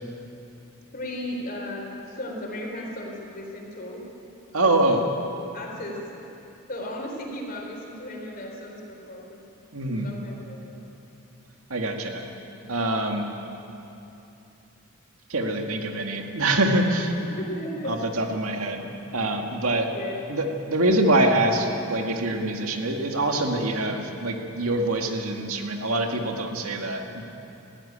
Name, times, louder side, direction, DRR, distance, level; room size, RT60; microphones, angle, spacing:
voice 1, 0.9-4.0 4.6-5.0 5.5-6.0 6.7-9.4 9.8-10.9 17.4-17.9 19.9-20.2, left 1 dB, 40° left, 0 dB, 3.9 m, -36 dB
voice 2, 4.5-5.0 9.7-10.1 11.7-12.2 12.7-13.3 15.3-17.2 17.9-19.9 20.3-27.3, right 1 dB, 90° right, 3 dB, 2.0 m, -25 dB
20.0 x 15.5 x 8.7 m, 2.9 s
head